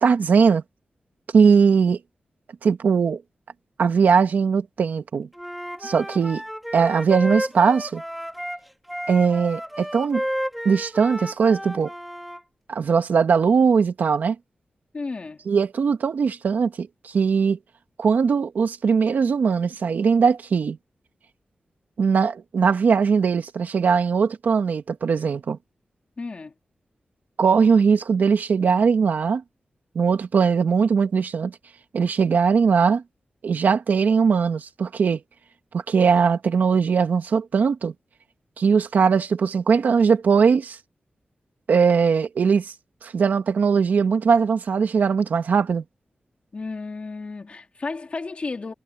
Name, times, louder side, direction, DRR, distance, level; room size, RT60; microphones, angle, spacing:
voice 1, 0.0-0.6 1.3-2.0 2.6-3.2 3.8-5.3 5.8-6.4 6.7-8.0 9.1-10.2 10.6-11.9 12.7-14.3 15.5-17.6 18.0-20.8 22.0-25.6 27.4-29.4 29.9-31.6 31.9-33.0 33.4-35.2 35.7-37.9 38.6-40.8 41.7-42.7 43.0-45.8, right 6 dB, 85° right, 1.7 m, -20 dB
Wind instrument woodwind instrument, 5.3-12.4, equal, ahead, 2.5 m, -32 dB
voice 2, 14.9-15.4 26.2-26.5 46.5-48.7, left 3 dB, 45° left, 3.0 m, -33 dB
wide cardioid pair, 100°, 3 cm